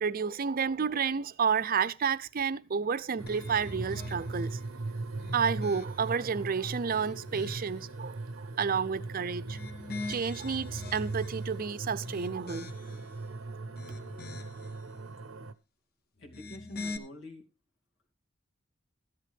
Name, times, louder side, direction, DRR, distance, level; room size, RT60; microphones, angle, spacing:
voice 1, 0.0-4.6 5.3-9.6 10.1-12.7, right 6 dB, 45° right, 0.5 m, -30 dB
sound 1, 3.2-15.5, right 3 dB, 85° right, 0.8 m, -39 dB
sound 2, 3.3-4.6 5.1-6.2 6.7-7.8 9.3-11.5 12.0-13.1 13.6-14.7 16.2-17.0, left 3 dB, 50° left, 1.1 m, -43 dB
voice 2, 16.2-17.5, left 2 dB, 65° left, 2.4 m, -47 dB
14.0 x 11.0 x 3.4 m
head